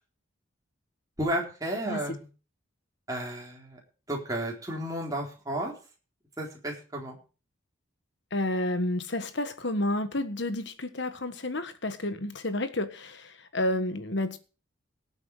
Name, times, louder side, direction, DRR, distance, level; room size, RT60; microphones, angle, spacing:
voice 1, 1.2-2.2 3.1-3.8 4.1-5.7 6.4-7.2, right 1 dB, 15° right, 4.0 m, -32 dB
voice 2, 8.3-14.4, left 1 dB, 55° left, 1.5 m, -30 dB
18.5 x 8.2 x 4.9 m
head